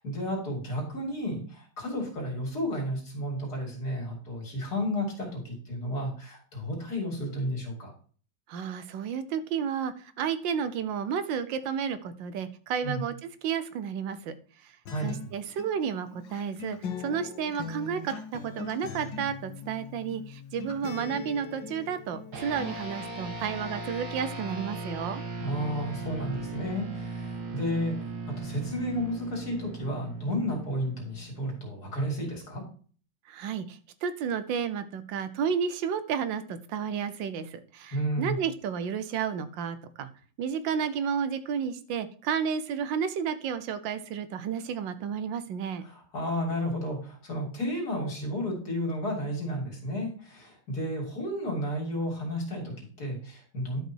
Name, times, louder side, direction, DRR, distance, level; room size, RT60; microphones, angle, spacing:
voice 1, 0.0-7.9 12.8-13.0 14.9-15.1 25.4-28.0 28.3-32.6 37.9-38.4 45.8-53.8, equal, 55° left, 0 dB, 3.3 m, -32 dB
voice 2, 8.5-14.3 14.6-14.7 15.0-25.2 33.3-40.1 40.4-45.8, right 7 dB, 85° right, 12 dB, 1.5 m, -32 dB
Acoustic guitar, 14.9-22.8, left 5 dB, 80° left, 1.9 m, -41 dB
sound 1, 22.3-32.0, right 3 dB, 60° right, 2.0 m, -38 dB
11.5 x 5.5 x 4.5 m, 0.43 s
omnidirectional pair, 2.0 m